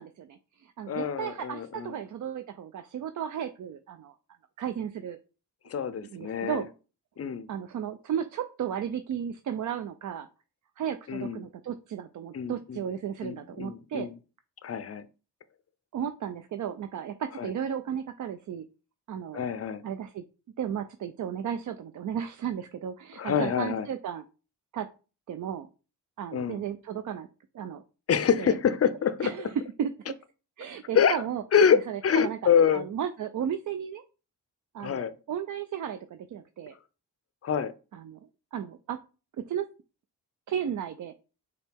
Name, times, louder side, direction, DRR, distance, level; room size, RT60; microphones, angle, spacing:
voice 1, 0.0-4.1 4.6-5.2 6.1-6.7 7.5-10.3 10.8-14.1 15.9-18.6 19.1-20.2 20.6-24.2 24.7-24.9 25.3-25.7 26.2-27.3 27.5-27.8 28.4-28.5 29.2-29.9 30.6-31.4 31.9-32.4 32.7-34.0 34.7-36.7 37.9-38.2 38.5-39.0 39.4-39.7 40.5-41.1, right 9 dB, 45° right, 0.4 m, -34 dB
voice 2, 0.9-2.0 5.7-6.6 7.2-7.5 11.1-11.5 12.3-12.8 13.2-14.1 14.6-15.0 17.4-17.5 19.3-19.8 23.2-23.9 26.3-26.6 28.1-29.3 30.9-31.2 31.5-32.9 34.8-35.1 37.4-37.7, left 7 dB, 35° left, 0.5 m, -26 dB
4.8 x 2.2 x 3.4 m
supercardioid pair, 40°, 43 cm